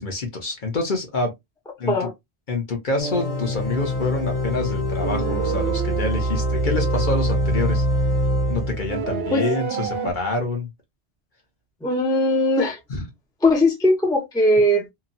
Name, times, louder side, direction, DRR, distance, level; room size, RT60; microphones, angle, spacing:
voice 1, 0.0-1.3 1.8-2.1 2.5-7.8 8.5-10.7 12.9-13.1, left 2 dB, 50° left, 1.0 m, -27 dB
sound 1, 3.0-9.1, equal, 70° left, 1.1 m, -24 dB
sound 2, 5.0-6.3 8.9-10.1, right 7 dB, 70° right, 0.8 m, -28 dB
voice 2, 11.8-12.8 13.4-14.8, left 1 dB, 5° left, 0.6 m, -19 dB
2.9 x 2.2 x 2.5 m
omnidirectional pair, 1.1 m